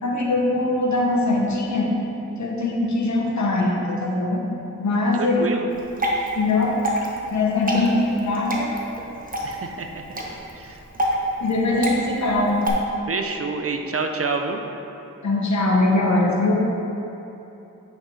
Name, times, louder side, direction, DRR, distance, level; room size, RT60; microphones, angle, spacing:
voice 1, 0.0-1.9 2.4-4.5 4.8-5.4 6.3-6.7 7.3-8.7 11.4-12.6 15.2-16.6, left 2 dB, 60° left, -2 dB, 1.1 m, -21 dB
voice 2, 5.1-5.7 9.4-10.1 10.5-10.8 13.1-14.6, right 4 dB, 45° right, 4 dB, 0.7 m, -27 dB
Water / Drip, 5.7-12.7, equal, 25° right, 1.2 m, -28 dB
9.0 x 5.5 x 3.4 m, 3.0 s
cardioid pair, 60°, 32 cm